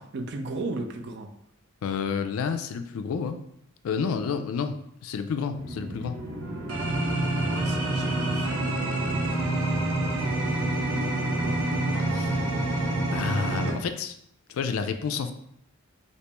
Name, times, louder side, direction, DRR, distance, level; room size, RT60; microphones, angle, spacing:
voice 1, 0.0-1.3 7.3-8.5 11.4-11.6, right 3 dB, 50° right, 6 dB, 0.4 m, -35 dB
voice 2, 1.8-3.4 3.8-6.1 12.1-12.4 12.8-14.1 14.5-15.3, left 6 dB, 70° left, 8 dB, 0.3 m, -30 dB
sound 1, 5.5-13.7, right 1 dB, 75° right, 0.9 m, -27 dB
2.9 x 2.9 x 3.3 m, 0.72 s
head